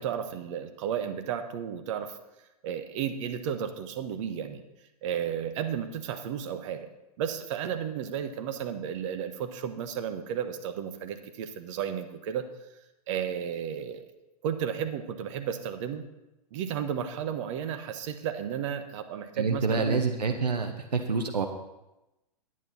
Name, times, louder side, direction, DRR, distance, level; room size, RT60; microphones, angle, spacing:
voice 1, 0.0-2.2 2.6-4.6 5.0-6.9 7.2-12.5 13.1-14.0 14.4-16.0 16.5-20.0, right 8 dB, 50° right, 8 dB, 1.1 m, -33 dB
voice 2, 19.4-21.5, right 4 dB, 90° right, 5 dB, 0.9 m, -27 dB
9.9 x 9.3 x 4.2 m, 0.96 s
hypercardioid pair, 115°, 20 cm